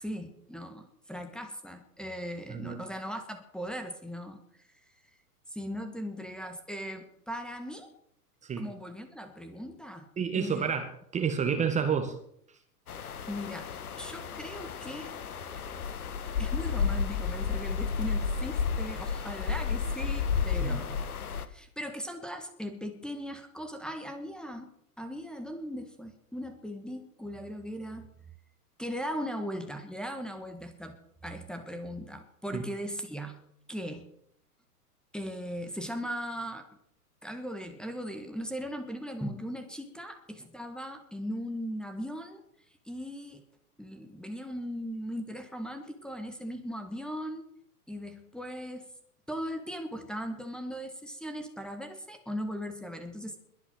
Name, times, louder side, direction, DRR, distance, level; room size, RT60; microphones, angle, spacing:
voice 1, 0.0-4.4 5.5-7.9 8.6-10.1 10.3-10.7 13.3-13.7 14.0-15.2 16.4-24.7 25.0-28.1 28.8-33.4 33.7-34.1 35.1-36.7 37.2-42.4 42.8-43.4 43.8-47.5 47.9-48.9 49.3-53.4, equal, ahead, 1.6 m, -38 dB
voice 2, 2.5-2.8 8.4-8.6 10.2-12.2 20.6-20.9 32.5-32.6, right 6 dB, 15° right, 1.5 m, -30 dB
sound 1, 12.9-21.5, left 6 dB, 65° left, 1.4 m, -32 dB
21.5 x 8.7 x 6.3 m
figure-of-eight pair, 105°, 47 cm